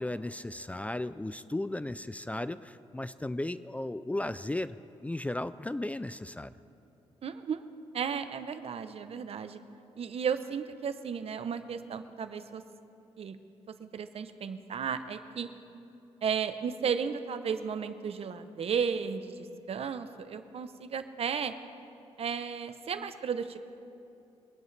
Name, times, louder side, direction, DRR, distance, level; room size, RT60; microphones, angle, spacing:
voice 1, 0.0-4.8 5.0-6.5, left 1 dB, 10° left, 14 dB, 0.3 m, -35 dB
voice 2, 7.2-7.6 7.9-9.6 10.0-12.6 13.2-13.4 13.8-15.5 16.2-21.5 22.2-23.6, right 6 dB, 60° right, 10 dB, 0.8 m, -34 dB
23.0 x 10.5 x 3.3 m, 2.8 s
cardioid pair, 85°, 11 cm